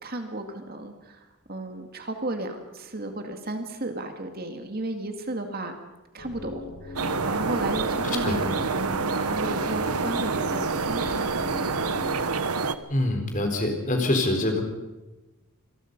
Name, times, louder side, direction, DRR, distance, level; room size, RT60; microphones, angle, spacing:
voice 1, 0.0-5.8 6.1-11.8, right 2 dB, 45° right, 5 dB, 2.3 m, -34 dB
sound 1, 6.2-12.2, left 3 dB, 85° left, 3.9 m, -39 dB
sound 2, 7.0-12.8, right 4 dB, 90° right, 1.2 m, -27 dB
voice 2, 12.9-14.6, left 1 dB, 35° left, 4 dB, 4.1 m, -25 dB
26.5 x 20.5 x 5.4 m, 1.1 s
head